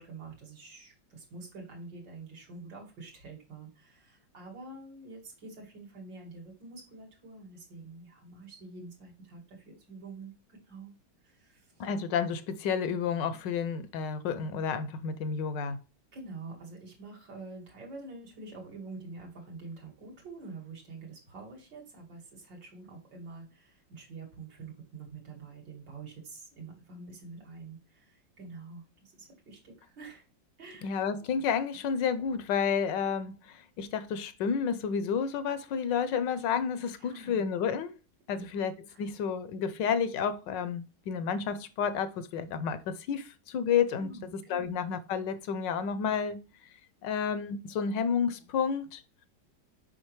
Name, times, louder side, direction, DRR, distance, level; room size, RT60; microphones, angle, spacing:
voice 1, 0.0-10.9 11.2-11.9 16.1-30.2 30.6-30.9 37.0-37.4 38.3-38.6 38.9-39.1 44.0-44.7, right 3 dB, 75° right, 2.8 m, -47 dB
voice 2, 11.8-15.8 30.8-38.0 38.3-38.7 39.0-44.1 44.5-46.4 47.0-49.0, left 6 dB, 75° left, 1.3 m, -30 dB
6.4 x 5.3 x 3.1 m
omnidirectional pair, 2.0 m